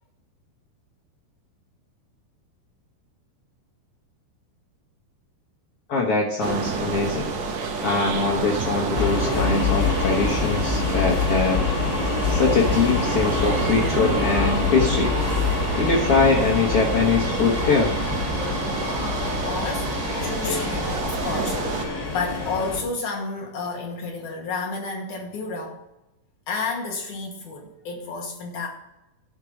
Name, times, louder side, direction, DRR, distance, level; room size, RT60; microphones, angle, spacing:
voice 1, 5.9-7.3 7.8-11.7 12.3-15.2 15.7-17.9, left 4 dB, 80° left, -1 dB, 1.3 m, -22 dB
sound 1, 6.4-21.9, right 4 dB, 60° right, 1.9 m, -29 dB
sound 2, 8.9-22.8, left 4 dB, 35° left, 1.8 m, -26 dB
voice 2, 19.2-25.8 26.5-28.7, left 4 dB, 60° left, 1 dB, 2.3 m, -31 dB
11.5 x 6.6 x 6.3 m, 0.92 s
omnidirectional pair, 4.8 m